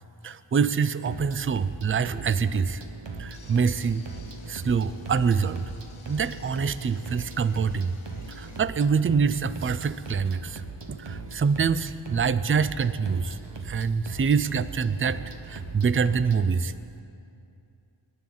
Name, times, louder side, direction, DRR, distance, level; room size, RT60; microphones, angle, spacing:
voice 1, 0.2-2.8 3.2-4.0 4.5-5.6 6.1-8.0 8.3-10.6 10.9-13.4 13.6-15.2 15.5-16.7, right 6 dB, 30° right, 15 dB, 0.4 m, -25 dB
sound 1, 0.9-16.4, right 3 dB, 60° right, 1.2 m, -39 dB
sound 2, 3.3-8.7, left 5 dB, 75° left, 1.0 m, -52 dB
19.5 x 10.0 x 4.0 m, 2.6 s
wide cardioid pair, 55°, 49 cm